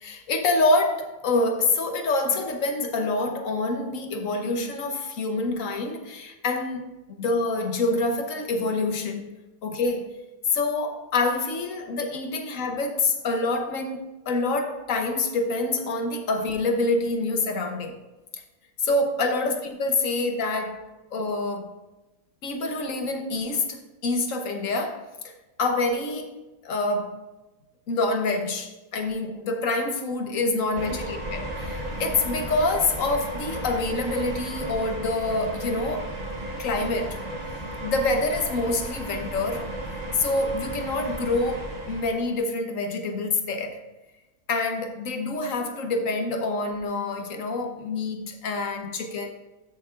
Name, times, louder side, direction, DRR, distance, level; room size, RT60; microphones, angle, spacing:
voice 1, 0.0-6.8 7.2-9.2 9.6-10.1 10.5-18.0 18.8-21.8 22.4-27.2 27.9-36.1 36.6-37.2 37.8-39.7 40.1-43.8 44.5-49.3, left 2 dB, 65° left, 1.3 m, -26 dB
sound 1, 30.8-42.4, right 1 dB, 30° right, 1.3 m, -34 dB
13.5 x 6.6 x 2.5 m
omnidirectional pair, 1.5 m